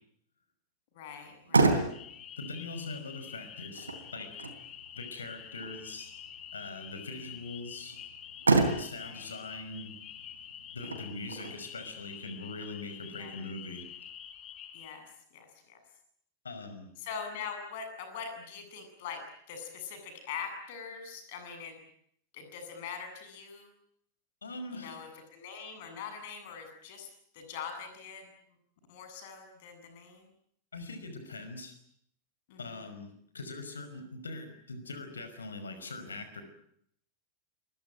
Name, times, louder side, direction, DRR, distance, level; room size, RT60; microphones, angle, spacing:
voice 1, 0.9-1.8 7.1-7.2 9.0-9.3 10.8-11.0 13.2-13.3 14.7-15.0 15.3-15.8 17.0-21.8 22.3-23.7 24.7-27.1 27.3-28.3 28.9-30.3 32.5-32.9, left 6 dB, 50° left, 6 dB, 8.0 m, -43 dB
Motor vehicle (road), 1.1-14.1, right 3 dB, 75° right, 3.4 m, -33 dB
sound 1, 1.9-14.9, left 9 dB, 30° left, 3.3 m, -47 dB
voice 2, 2.4-4.3 4.9-6.1 6.5-8.0 8.8-9.9 10.7-13.8 16.4-16.9 24.4-25.0 30.7-31.7 32.6-36.4, left 3 dB, 75° left, 10 dB, 5.4 m, -42 dB
27.0 x 22.0 x 9.2 m, 0.69 s
figure-of-eight pair, 90°, 0 cm